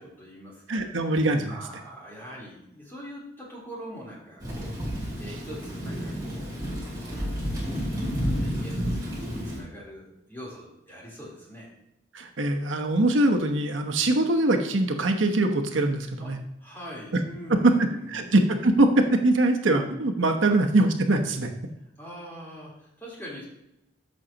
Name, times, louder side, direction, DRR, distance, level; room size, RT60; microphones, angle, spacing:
voice 1, 0.0-0.6 1.5-11.7 16.2-16.3 16.6-18.2 20.4-20.5 22.0-23.4, equal, 10° left, -5 dB, 3.4 m, -43 dB
voice 2, 0.7-1.6 12.1-16.4 17.1-17.2 17.6-17.7 18.1-21.5, right 2 dB, 85° right, 4 dB, 0.9 m, -22 dB
Thunder / Rain, 4.4-9.6, equal, 20° right, 2.6 m, -31 dB
14.0 x 6.3 x 2.9 m, 0.85 s
head